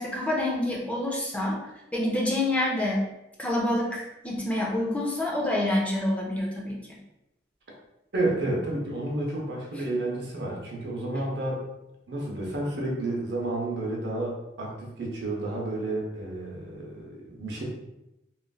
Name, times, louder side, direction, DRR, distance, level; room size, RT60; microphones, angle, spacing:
voice 1, 0.0-1.6 1.9-3.1 3.4-7.0, left 1 dB, 5° left, -3 dB, 0.4 m, -27 dB
voice 2, 8.1-11.6 12.1-17.6, right 2 dB, 70° right, -1 dB, 0.7 m, -31 dB
3.0 x 2.4 x 2.3 m, 0.93 s
head